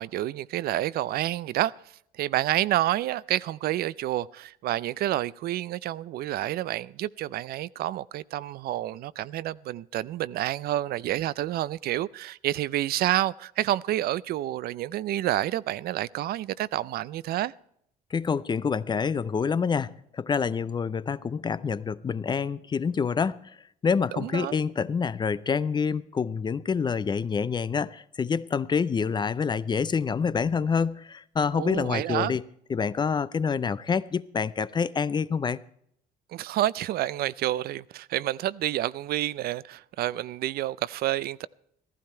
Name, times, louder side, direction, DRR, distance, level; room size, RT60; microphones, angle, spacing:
voice 1, 0.0-1.7 2.2-17.5 24.1-24.6 31.5-32.3 36.3-41.5, right 14 dB, 65° right, 0.5 m, -29 dB
voice 2, 18.1-23.5 23.8-32.4 32.7-35.6, left 6 dB, 25° left, 0.5 m, -27 dB
15.0 x 14.0 x 4.4 m
cardioid pair, 110°, 17 cm